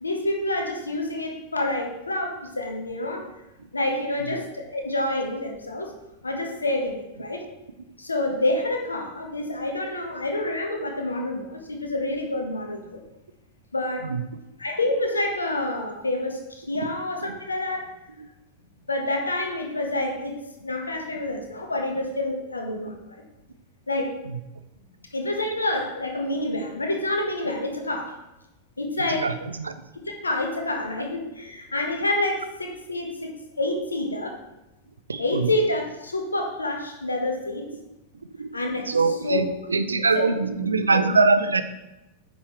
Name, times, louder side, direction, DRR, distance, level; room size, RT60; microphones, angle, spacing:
voice 1, 0.0-3.3 3.7-5.9 6.2-7.4 8.0-13.0 13.7-14.1 14.6-17.9 18.9-20.3 20.6-23.2 23.9-24.2 25.1-28.2 28.8-29.4 30.0-34.4 35.2-37.6 38.5-39.4 40.1-40.3 40.8-41.0, left 2 dB, 80° left, 3 dB, 1.3 m, -28 dB
voice 2, 35.1-35.4 38.4-38.5 38.9-41.6, right 4 dB, 75° right, 11 dB, 0.5 m, -22 dB
9.2 x 5.6 x 3.3 m, 0.95 s
figure-of-eight pair, 90°, 0 cm